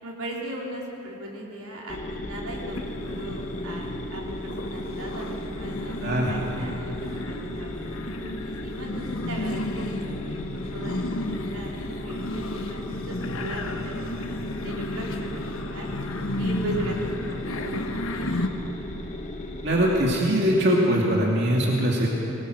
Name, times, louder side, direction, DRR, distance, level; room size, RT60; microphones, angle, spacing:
voice 1, 0.0-7.8 8.2-10.4 10.7-15.9 16.4-17.8 18.1-18.5, right 1 dB, 80° right, -2 dB, 3.8 m, -38 dB
sound 1, 1.9-20.2, left 1 dB, 30° left, 1.5 m, -36 dB
sound 2, 2.7-18.5, left 1 dB, 65° left, 1.4 m, -33 dB
voice 2, 6.0-6.3 19.6-22.1, equal, 50° right, -3 dB, 2.7 m, -22 dB
23.5 x 20.0 x 6.6 m, 2.9 s
head